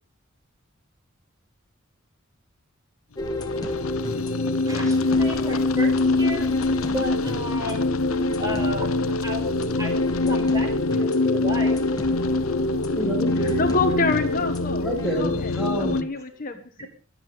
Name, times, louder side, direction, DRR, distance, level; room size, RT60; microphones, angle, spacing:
sound 1, 3.2-16.0, left 3 dB, 85° left, 0.8 m, -24 dB
sound 2, 3.2-15.2, equal, 20° left, 2.2 m, -32 dB
voice 1, 4.6-6.5 6.9-9.5 9.7-11.7 16.8-16.9, equal, 15° right, 3 dB, 5.1 m, -33 dB
voice 2, 12.6-13.6 14.8-16.1 16.5-16.6, right 1 dB, ahead, -3 dB, 2.7 m, -29 dB
voice 3, 13.6-14.8 15.2-15.5 15.8-16.6, left 3 dB, 40° left, 6 dB, 1.4 m, -26 dB
22.5 x 8.5 x 5.3 m, 0.40 s
head